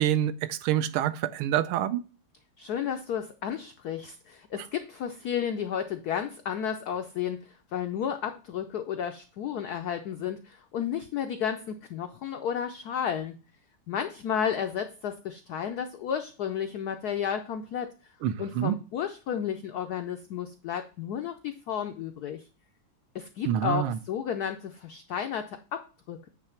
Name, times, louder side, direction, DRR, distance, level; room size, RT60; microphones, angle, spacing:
voice 1, 0.0-2.0 18.2-18.8 23.4-24.0, right 11 dB, 80° right, 1.4 m, -27 dB
voice 2, 2.6-13.4 13.9-17.9 18.4-22.5 23.1-26.3, left 8 dB, 85° left, 0.8 m, -32 dB
8.8 x 3.3 x 5.7 m
omnidirectional pair, 2.3 m